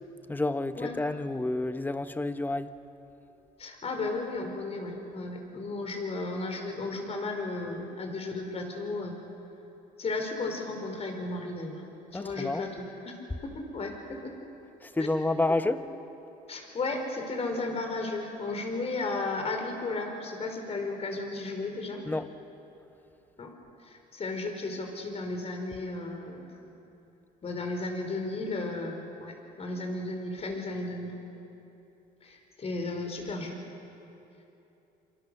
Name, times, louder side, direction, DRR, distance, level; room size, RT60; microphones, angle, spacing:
voice 1, 0.3-2.7 12.1-12.6 14.8-15.8 22.1-22.3, left 2 dB, 10° left, 11 dB, 1.0 m, -29 dB
voice 2, 3.6-9.2 10.0-11.8 12.1-13.2 13.4-14.3 15.0-15.1 15.6-15.8 16.5-22.0 23.4-23.5 23.8-26.5 27.4-31.2 32.2-33.6, left 2 dB, 40° left, 3 dB, 4.7 m, -34 dB
26.5 x 26.0 x 6.7 m, 2.9 s
cardioid pair, 110°, 17 cm